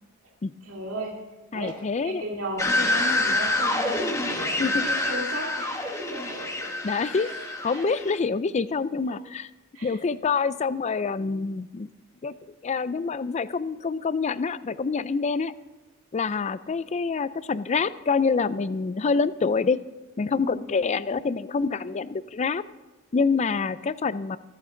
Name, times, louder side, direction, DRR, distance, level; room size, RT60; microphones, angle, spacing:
voice 1, 0.6-1.1 1.5-5.8 6.1-6.7 7.1-7.9 9.1-9.2 9.7-10.0 20.4-20.7, right 1 dB, 75° right, -2 dB, 2.3 m, -36 dB
voice 2, 1.5-2.2 4.6-4.8 6.8-7.3 7.6-9.5 9.8-11.9 12.2-12.3 12.6-15.5 16.1-19.8 20.2-22.6 23.1-24.4, left 4 dB, 35° left, 16 dB, 0.4 m, -26 dB
sound 1, 2.6-8.2, left 2 dB, 15° left, 1.3 m, -27 dB
24.5 x 8.6 x 3.8 m, 1.1 s
head